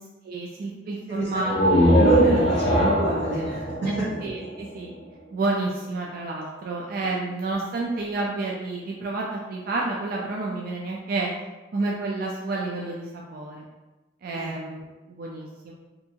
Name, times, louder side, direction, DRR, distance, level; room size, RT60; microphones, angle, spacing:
voice 1, 0.2-1.6 3.9-4.0 4.2-5.0 5.3-11.3 11.7-13.7 14.2-15.7, right 2 dB, 55° right, -2 dB, 0.3 m, -30 dB
sound 1, 1.4-5.1, equal, 30° left, 0.5 m, -21 dB
voice 2, 1.9-3.7 7.0-7.1 14.3-14.6, right 1 dB, 80° right, -8 dB, 0.7 m, -28 dB
2.6 x 2.4 x 2.7 m, 1.1 s
head